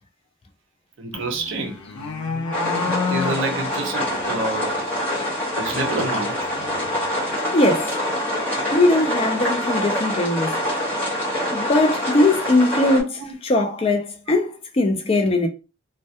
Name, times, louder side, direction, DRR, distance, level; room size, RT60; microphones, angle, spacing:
voice 1, 1.0-1.8 3.1-4.8 5.6-6.5 13.2-13.3, right 2 dB, 60° right, 0.5 m, -28 dB
sound 1, 1.1-4.6 5.7-7.2, left 4 dB, 90° left, 0.5 m, -30 dB
sound 2, 2.5-13.0, equal, 10° left, 0.8 m, -25 dB
voice 2, 7.5-7.9 8.7-10.6 11.5-15.5, left 2 dB, 25° left, 0.3 m, -20 dB
2.2 x 2.1 x 2.7 m
head